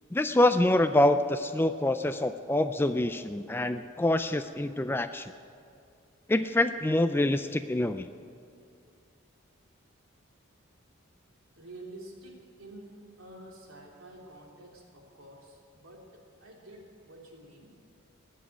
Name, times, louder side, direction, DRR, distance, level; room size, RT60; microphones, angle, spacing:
voice 1, 0.1-5.3 6.3-8.1, left 1 dB, 10° left, 10 dB, 0.3 m, -26 dB
voice 2, 11.6-17.7, right 1 dB, 70° right, -1 dB, 3.2 m, -49 dB
20.5 x 7.5 x 9.0 m, 2.4 s
head